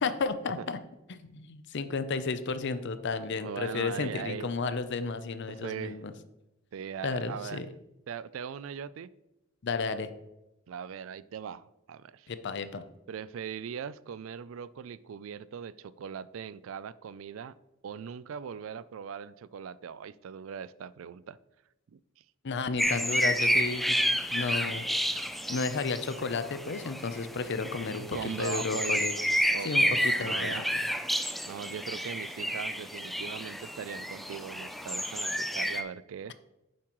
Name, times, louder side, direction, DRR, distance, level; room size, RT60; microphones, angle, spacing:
voice 1, 0.0-0.8 1.1-6.1 7.0-7.7 9.6-10.1 12.3-12.8 22.4-24.0 24.3-24.9 25.5-29.1 29.6-30.6, left 4 dB, 60° left, 0.6 m, -32 dB
voice 2, 3.4-4.5 5.5-6.0 6.7-7.7 8.1-9.1 10.7-12.3 13.1-17.5 17.8-21.4 21.9-22.0 27.6-29.1 29.5-30.7 31.5-36.3, right 7 dB, 75° right, 0.4 m, -40 dB
sound 1, 22.8-35.8, equal, ahead, 0.4 m, -30 dB
9.4 x 7.3 x 3.1 m
head